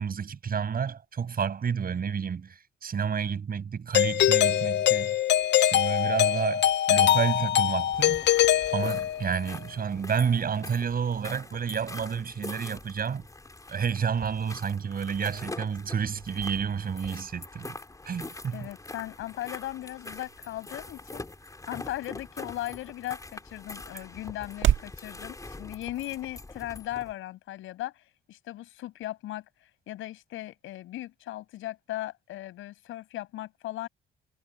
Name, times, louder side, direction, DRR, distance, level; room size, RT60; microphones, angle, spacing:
voice 1, 0.0-5.2 5.6-8.2 8.7-13.2 13.7-17.7 18.0-18.7, right 7 dB, 45° right, 6.7 m, -30 dB
Doorbell, 3.9-9.4, left 12 dB, 65° left, 0.5 m, -23 dB
sound 1, 7.9-27.1, left 2 dB, 15° left, 4.4 m, -44 dB
voice 2, 18.5-21.3 21.7-33.9, left 15 dB, 90° left, 7.4 m, -38 dB
sound 2, 18.7-25.0, right 11 dB, 75° right, 1.5 m, -34 dB
cardioid pair, 90°, 20 cm